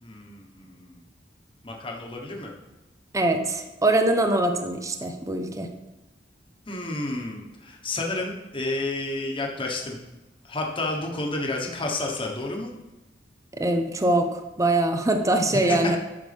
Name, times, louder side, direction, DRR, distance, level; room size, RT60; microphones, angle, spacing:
voice 1, 0.0-1.0 1.6-2.5 6.7-10.0 10.4-12.7 15.5-15.9, left 2 dB, 30° left, 0 dB, 1.3 m, -30 dB
voice 2, 3.1-5.7 13.5-16.0, right 2 dB, 20° right, 5 dB, 0.7 m, -23 dB
10.5 x 6.5 x 3.5 m, 1.1 s
head